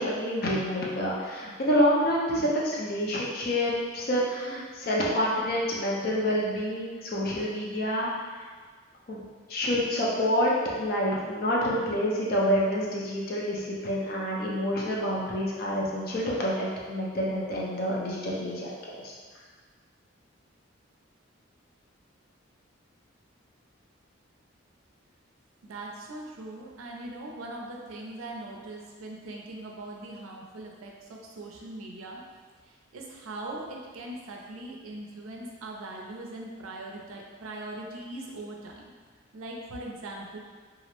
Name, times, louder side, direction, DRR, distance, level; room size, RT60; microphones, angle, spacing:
voice 1, 0.0-8.1 9.1-9.2 9.5-18.7 19.0-19.1, equal, 45° left, -4 dB, 0.5 m, -27 dB
voice 2, 25.6-32.2 32.6-38.9 39.3-40.4, right 2 dB, 90° right, 0 dB, 0.4 m, -40 dB
2.4 x 2.0 x 2.9 m, 1.5 s
head